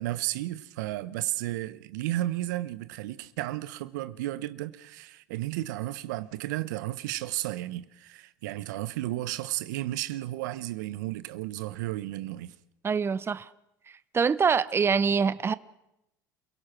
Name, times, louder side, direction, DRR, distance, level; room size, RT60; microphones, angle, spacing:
voice 1, 0.0-12.5, right 15 dB, 75° right, 1.0 m, -33 dB
voice 2, 12.8-13.5 14.1-15.5, right 6 dB, 25° right, 0.8 m, -24 dB
28.5 x 17.0 x 6.0 m
hypercardioid pair, 80°, 10 cm